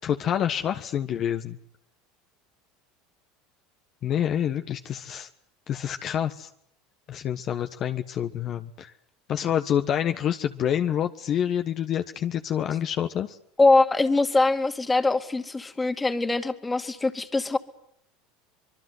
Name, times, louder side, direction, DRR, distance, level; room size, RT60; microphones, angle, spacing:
voice 1, 0.0-1.6 4.0-5.3 5.7-6.5 7.1-8.9 9.3-13.4, left 9 dB, 45° left, 7 dB, 1.3 m, -27 dB
voice 2, 13.6-17.6, left 3 dB, 15° left, 7 dB, 2.4 m, -22 dB
25.5 x 23.0 x 8.1 m, 0.72 s
supercardioid pair, 100°, 0 cm